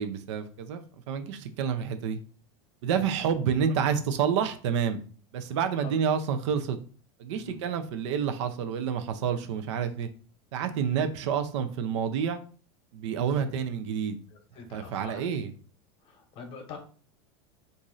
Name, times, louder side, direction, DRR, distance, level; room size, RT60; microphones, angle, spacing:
voice 1, 0.0-2.2 2.8-5.0 5.3-6.8 7.2-10.1 10.5-12.4 12.9-14.2 14.7-15.5, right 7 dB, 75° right, 8 dB, 0.5 m, -29 dB
voice 2, 7.3-7.6 13.5-13.6 14.5-15.2 16.0-16.8, left 5 dB, 35° left, 4 dB, 0.9 m, -44 dB
3.0 x 2.6 x 3.8 m, 0.41 s
supercardioid pair, 140°, 15 cm